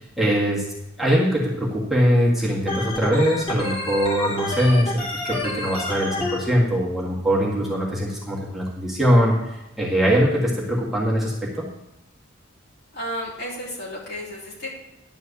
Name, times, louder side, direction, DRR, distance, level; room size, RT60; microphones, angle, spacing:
voice 1, 0.2-0.7 1.0-11.6, equal, ahead, -6 dB, 1.7 m, -22 dB
Organ, 2.7-6.4, left 2 dB, 30° left, 2.0 m, -28 dB
voice 2, 12.9-14.7, equal, 55° left, -5 dB, 3.8 m, -32 dB
11.0 x 4.6 x 8.2 m, 0.93 s
head